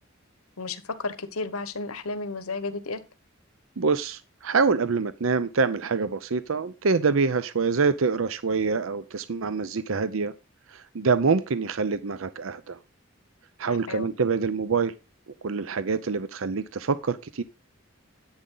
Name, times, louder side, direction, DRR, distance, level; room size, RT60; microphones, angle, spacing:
voice 1, 0.6-3.0 13.9-14.1, left 3 dB, 90° left, 11 dB, 1.3 m, -32 dB
voice 2, 3.8-10.3 10.7-12.8 13.6-14.9 15.4-17.4, right 4 dB, 70° right, 14 dB, 0.6 m, -25 dB
10.5 x 8.8 x 3.9 m, 0.28 s
head